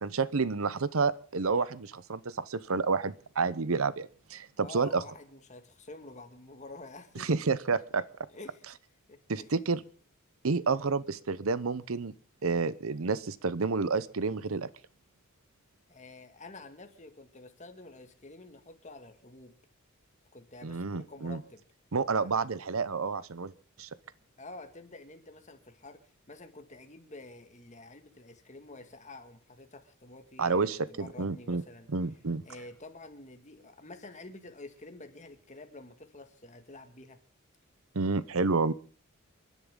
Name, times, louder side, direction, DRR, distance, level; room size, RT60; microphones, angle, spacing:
voice 1, 0.0-5.0 7.2-8.0 9.3-9.8 10.4-12.1 12.4-14.7 20.6-21.4 21.9-23.5 23.8-23.9 30.4-31.6 31.9-32.4 37.9-38.7, right 4 dB, 75° right, 17 dB, 0.8 m, -29 dB
voice 2, 4.6-7.3 8.3-8.7 9.1-9.5 15.9-19.5 20.3-21.6 22.2-22.3 24.4-26.0 26.3-31.9 32.5-37.2, left 2 dB, 35° left, 6 dB, 2.1 m, -49 dB
29.5 x 11.0 x 3.8 m, 0.40 s
head